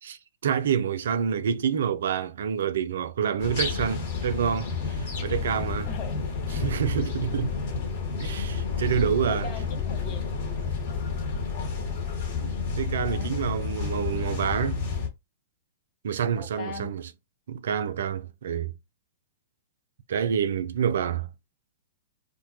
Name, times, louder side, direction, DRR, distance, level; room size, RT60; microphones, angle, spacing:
voice 1, 0.0-5.9 6.5-7.5 8.2-9.5 12.4-14.8 16.0-17.0 17.5-18.7 20.1-21.3, right 8 dB, 70° right, 0.4 m, -28 dB
sound 1, 3.4-15.1, left 5 dB, 55° left, 1.3 m, -30 dB
voice 2, 5.9-6.2 9.3-10.4 13.0-13.4 16.3-16.9, left 4 dB, 40° left, 0.8 m, -39 dB
2.6 x 2.2 x 2.6 m
hypercardioid pair, 110°, 0 cm